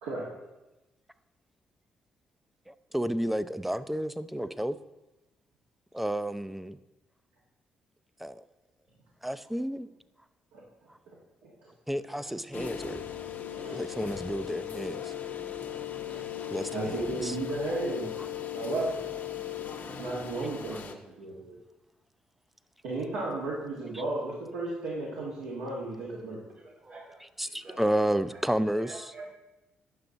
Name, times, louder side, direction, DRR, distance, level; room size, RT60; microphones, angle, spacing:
voice 1, 2.7-4.8 5.9-6.8 8.2-8.4 9.2-9.9 10.9-11.0 11.9-13.0 13.7-15.1 16.4-17.4 18.2-18.3 20.7-20.8 23.9-24.0 27.2-29.1, right 1 dB, 5° right, 13 dB, 0.4 m, -31 dB
sound 1, 12.5-20.9, left 10 dB, 55° left, 0.8 m, -38 dB
voice 2, 13.5-14.1 15.6-15.8 16.1-16.2 16.7-18.1 18.5-19.0 19.8-21.5 22.8-26.4, right 2 dB, 85° right, -5 dB, 1.6 m, -34 dB
voice 3, 26.5-28.0 28.8-29.3, right 2 dB, 55° right, 0 dB, 2.0 m, -47 dB
8.5 x 5.9 x 3.9 m, 1.0 s
hypercardioid pair, 50°, 4 cm